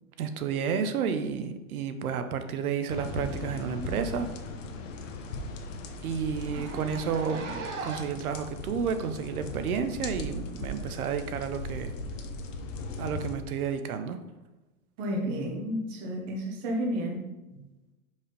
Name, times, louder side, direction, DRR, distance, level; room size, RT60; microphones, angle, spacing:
voice 1, 0.2-4.3 6.0-11.9 13.0-14.2, right 7 dB, 75° right, 9 dB, 0.8 m, -31 dB
sound 1, 2.9-13.4, left 2 dB, 60° left, 0.9 m, -38 dB
Zipper (clothing), 3.8-3.9 4.2-4.3 4.7-4.8 5.1-5.2 5.5-5.6 6.3-8.3 9.0-9.1 10.1-10.2, right 4 dB, 55° right, 1.0 m, -40 dB
voice 2, 15.0-17.2, equal, 20° right, 0 dB, 0.7 m, -31 dB
5.3 x 3.4 x 5.2 m, 1.1 s
hypercardioid pair, 160°, 44 cm